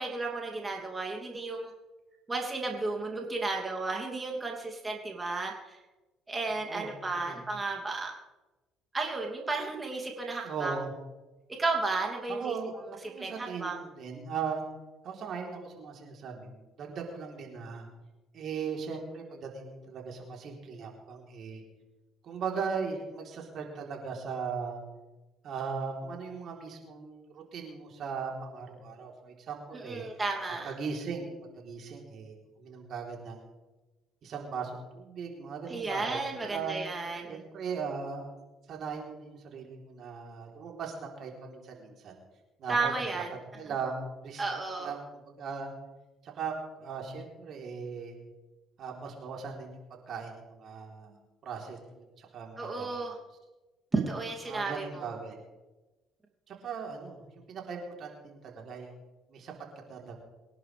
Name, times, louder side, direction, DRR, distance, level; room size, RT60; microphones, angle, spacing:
voice 1, 0.0-1.7 2.3-5.8 6.3-8.1 8.9-10.8 11.6-12.5 13.2-13.8 29.7-30.7 35.7-37.4 42.7-43.3 44.4-44.9 52.6-53.2 53.9-55.1, right 3 dB, 25° right, 0 dB, 2.8 m, -33 dB
voice 2, 6.5-7.4 10.4-10.9 12.3-12.7 13.0-14.6 15.0-17.9 18.3-21.6 22.2-24.8 25.4-30.0 30.6-33.4 34.2-36.8 37.3-38.2 38.7-42.2 42.6-43.2 43.6-44.4 44.8-45.7 46.2-48.1 48.8-49.8 50.1-51.1 51.4-52.9 54.5-55.4 56.5-58.9 59.3-59.5 59.9-60.2, right 5 dB, 60° right, 0 dB, 3.8 m, -38 dB
24.0 x 11.0 x 3.5 m, 1.1 s
hypercardioid pair, 60°, 0 cm